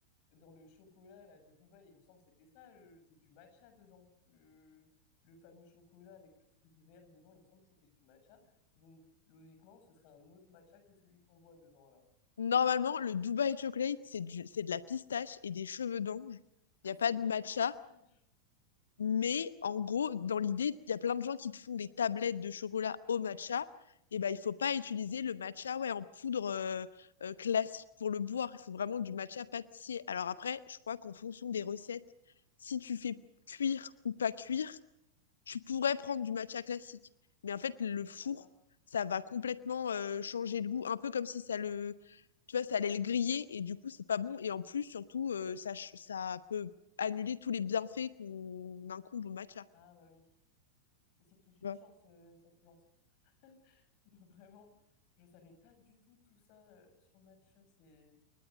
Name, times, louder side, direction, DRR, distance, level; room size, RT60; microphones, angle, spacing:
voice 1, 0.3-4.9 5.2-12.0 16.8-18.1 38.2-38.5 49.7-50.3 51.2-52.8 53.2-54.7 55.2-58.1, left 4 dB, 45° left, 8 dB, 7.3 m, -62 dB
voice 2, 12.4-16.4 16.8-17.7 19.0-23.7 24.1-32.0 32.6-33.1 33.5-34.8 35.5-37.0 37.4-38.4 38.9-42.2 42.5-46.7 47.0-49.6 51.6-51.8, left 7 dB, 70° left, 16 dB, 0.9 m, -35 dB
29.0 x 24.0 x 5.3 m, 0.81 s
figure-of-eight pair, 90°, 0 cm